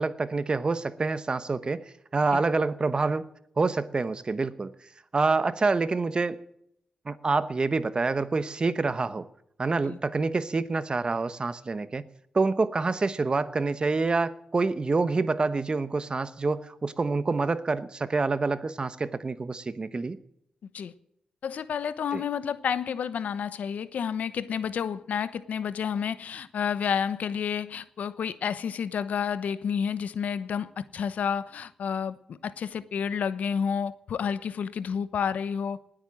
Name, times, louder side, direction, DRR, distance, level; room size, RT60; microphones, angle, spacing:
voice 1, 0.0-1.8 2.1-3.3 3.6-4.7 5.1-6.4 7.1-9.3 9.6-12.0 12.3-20.2 22.1-22.2, right 3 dB, 35° right, 14 dB, 1.0 m, -27 dB
voice 2, 21.4-35.8, left 7 dB, 80° left, 15 dB, 1.0 m, -30 dB
19.5 x 8.9 x 7.6 m, 0.73 s
cardioid pair, 85°, 3 cm